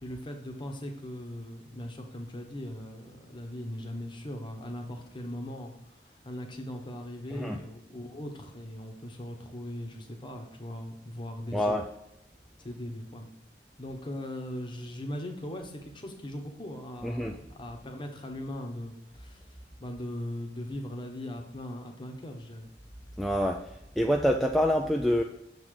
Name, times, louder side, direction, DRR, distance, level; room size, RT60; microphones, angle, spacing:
voice 1, 0.0-11.7 12.6-13.3 13.8-22.7, left 1 dB, 25° left, 2 dB, 1.0 m, -39 dB
voice 2, 11.5-11.8 17.0-17.4 23.2-23.6 24.0-25.2, equal, ahead, 1 dB, 0.4 m, -26 dB
7.4 x 3.9 x 4.8 m, 0.82 s
head